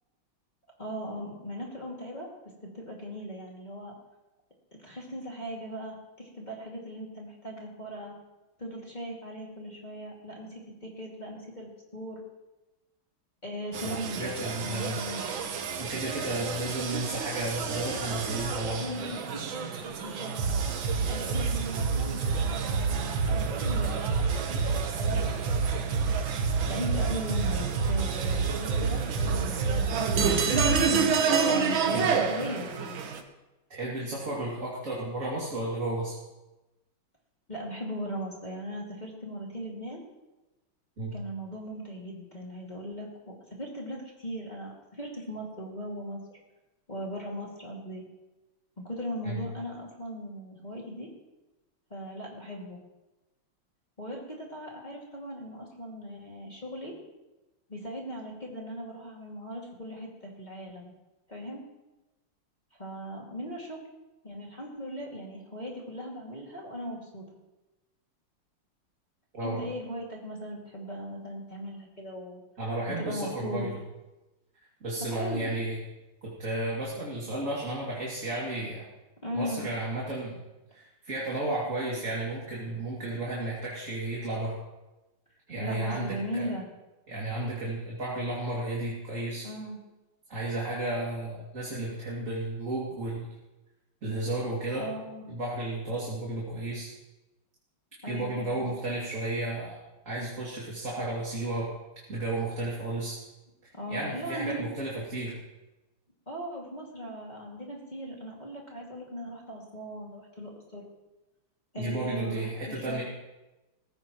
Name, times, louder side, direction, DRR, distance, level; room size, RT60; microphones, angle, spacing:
voice 1, 0.8-2.3 2.6-3.9 4.7-8.2 8.6-12.2 13.4-15.3 18.8-19.4 19.7-20.3 21.1-25.7 26.6-30.6 31.5-33.0 37.5-40.1 41.1-46.2 46.9-48.0 48.8-51.1 51.9-52.8 54.0-57.0 57.7-60.9 61.3-61.6 62.7-63.8 64.2-67.2 69.4-72.4 73.0-73.6 75.0-75.4 79.2-79.7 85.6-86.7 89.4-89.8 94.8-95.2 98.0-98.7 103.7-104.7 106.3-110.9 111.7-113.0, equal, 20° left, -3 dB, 2.3 m, -38 dB
sound 1, 13.7-33.2, right 5 dB, 70° right, 1.8 m, -28 dB
voice 2, 13.8-15.0 15.8-18.8 31.9-32.6 33.7-36.1 41.0-41.1 49.2-49.4 69.3-69.6 72.6-73.8 74.8-75.8 76.2-78.9 79.3-80.4 80.7-84.6 85.5-86.5 87.1-89.5 90.3-93.3 94.0-94.9 95.3-96.9 98.1-99.8 100.0-101.7 102.1-103.2 103.6-105.4 111.8-113.0, right 2 dB, 35° right, -5 dB, 2.8 m, -33 dB
18.5 x 16.0 x 3.1 m, 1.0 s
omnidirectional pair, 2.4 m